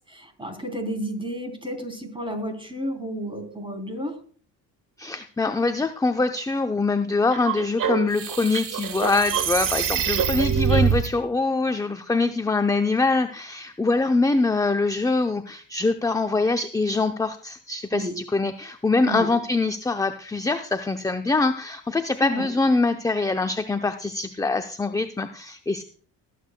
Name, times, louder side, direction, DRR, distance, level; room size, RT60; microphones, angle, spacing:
voice 1, 0.1-4.2 17.9-18.2 19.0-19.3 22.2-22.5, equal, 10° right, 5 dB, 3.3 m, -31 dB
voice 2, 5.0-25.8, left 3 dB, 10° left, 8 dB, 0.5 m, -24 dB
sound 1, 7.3-11.1, right 8 dB, 50° right, 1.1 m, -24 dB
21.0 x 8.4 x 2.2 m, 0.43 s
supercardioid pair, 75°, 42 cm